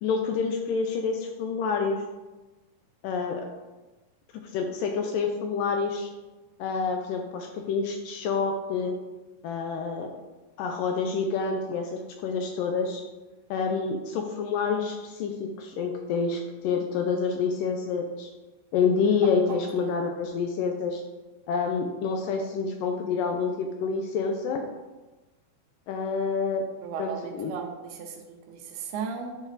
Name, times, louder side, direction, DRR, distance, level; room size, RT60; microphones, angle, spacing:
voice 1, 0.0-2.0 3.0-3.5 4.5-6.1 6.6-9.0 9.4-10.1 10.6-13.0 13.5-18.3 18.7-21.0 21.5-24.6 25.9-26.6 27.0-27.5, left 5 dB, 80° left, 3 dB, 2.1 m, -28 dB
voice 2, 19.5-20.0 26.8-29.4, right 5 dB, 85° right, 3 dB, 2.8 m, -36 dB
10.5 x 4.1 x 4.0 m, 1.1 s
omnidirectional pair, 4.4 m